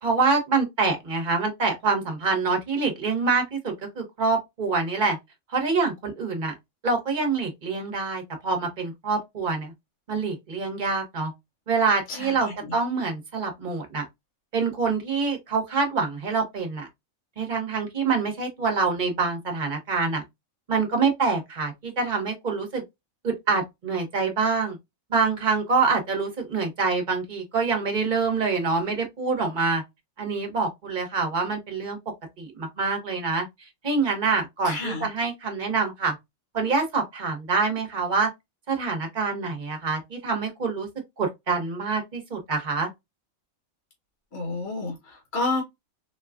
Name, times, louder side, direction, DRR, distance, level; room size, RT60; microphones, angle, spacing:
voice 1, 0.0-5.2 5.5-6.5 6.8-9.7 10.1-11.3 11.7-14.0 14.5-16.9 17.4-20.2 20.7-22.8 23.2-24.8 25.1-29.8 30.2-32.0 32.4-33.5 33.8-36.1 36.5-38.3 38.7-40.9 41.2-42.9, right 4 dB, 40° right, 1.0 m, -26 dB
voice 2, 12.1-12.5 34.6-35.1 44.3-45.6, left 3 dB, 50° left, 1.2 m, -30 dB
4.1 x 2.2 x 2.3 m
omnidirectional pair, 1.4 m